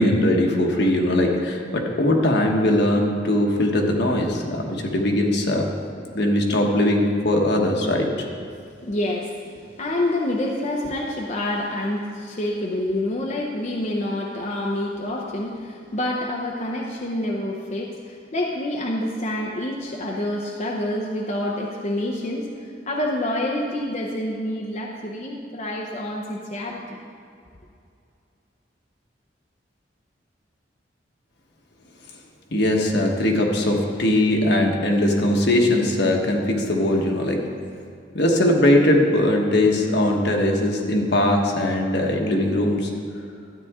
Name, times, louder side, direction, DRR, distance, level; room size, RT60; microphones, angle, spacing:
voice 1, 0.0-5.7 6.1-8.1 32.5-37.4 38.1-42.9, left 1 dB, 65° left, 1 dB, 1.3 m, -20 dB
voice 2, 8.8-9.5 9.8-26.8, left 1 dB, 40° left, -1 dB, 0.7 m, -27 dB
12.5 x 9.1 x 3.7 m, 2.5 s
head